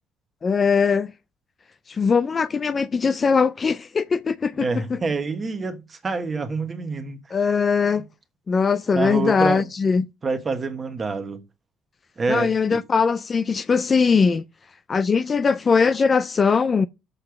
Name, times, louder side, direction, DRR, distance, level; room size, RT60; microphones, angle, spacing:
voice 1, 0.4-1.1 1.9-5.0 7.3-8.0 8.5-10.1 12.3-14.4 14.9-16.9, left 5 dB, 25° left, 0.4 m, -20 dB
voice 2, 4.6-7.7 8.9-9.7 10.2-11.4 12.2-12.8, right 4 dB, 20° right, 1.3 m, -27 dB
6.8 x 5.6 x 5.8 m
cardioid pair, 155°, 0 cm